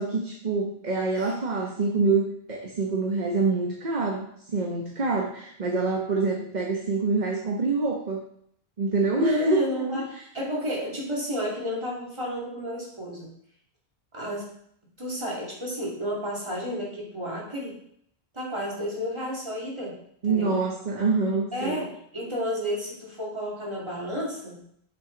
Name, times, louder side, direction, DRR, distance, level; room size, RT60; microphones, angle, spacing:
voice 1, 0.0-8.2 8.8-9.6 9.9-10.0 20.2-21.8, right 3 dB, 45° right, 0 dB, 1.1 m, -26 dB
voice 2, 9.1-13.3 14.1-14.5 15.0-17.8 18.3-20.5 21.5-24.6, equal, 25° right, -4 dB, 2.7 m, -31 dB
9.0 x 6.1 x 3.9 m, 0.67 s
omnidirectional pair, 1.1 m